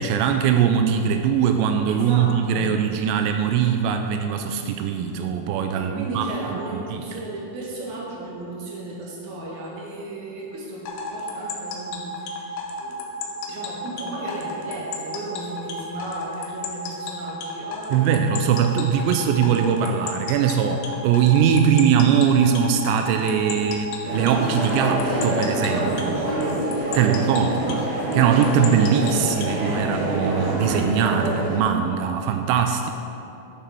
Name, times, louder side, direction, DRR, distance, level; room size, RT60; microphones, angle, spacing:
voice 1, 0.0-7.1 17.9-26.2 26.9-27.8 28.1-32.9, right 8 dB, 85° right, 5 dB, 2.8 m, -21 dB
voice 2, 1.9-2.7 5.8-13.1 13.5-18.1 26.8-28.0, right 2 dB, 50° right, -5 dB, 2.9 m, -35 dB
sound 1, 10.9-29.6, left 5 dB, 75° left, 2.9 m, -33 dB
sound 2, 24.0-31.6, right 1 dB, 70° right, 3.0 m, -26 dB
12.5 x 7.4 x 4.5 m, 2.8 s
omnidirectional pair, 5.0 m